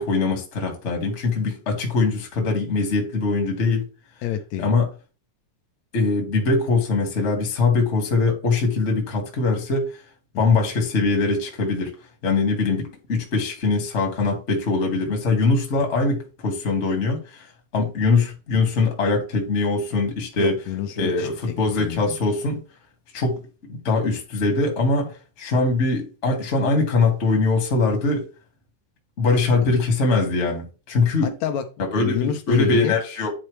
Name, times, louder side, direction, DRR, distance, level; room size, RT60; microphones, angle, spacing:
voice 1, 0.0-3.8 4.6-4.9 5.9-9.9 10.4-11.9 12.2-17.5 17.7-20.6 21.0-22.6 23.1-25.1 25.4-28.3 29.2-31.3 31.8-33.3, left 3 dB, 30° left, 1.3 m, -22 dB
voice 2, 4.2-4.7 10.3-10.6 20.4-21.3 21.8-22.2 29.6-29.7 31.2-31.7 32.0-33.0, left 10 dB, 75° left, 1.7 m, -28 dB
9.8 x 4.2 x 3.2 m
omnidirectional pair, 3.8 m